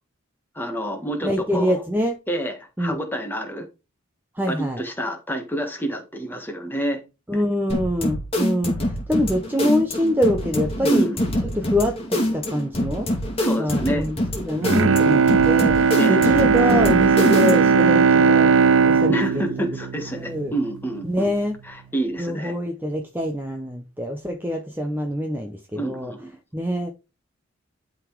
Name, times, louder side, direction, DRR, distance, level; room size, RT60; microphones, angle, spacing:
voice 1, 0.5-1.8 2.3-3.6 4.5-7.0 10.8-11.2 13.4-14.1 16.0-16.2 19.1-21.3 21.6-22.5 25.7-26.3, right 1 dB, 10° left, 1.6 m, -28 dB
voice 2, 1.2-2.2 2.8-3.0 4.3-4.8 7.3-11.1 11.4-13.1 13.6-19.7 20.1-20.5 21.0-21.6 22.2-26.1 26.5-26.9, equal, 10° right, 0.8 m, -25 dB
sound 1, 7.7-17.8, left 1 dB, 25° left, 2.1 m, -25 dB
Bowed string instrument, 14.6-20.8 21.2-21.3, right 5 dB, 70° right, 0.5 m, -18 dB
11.5 x 4.0 x 4.7 m
head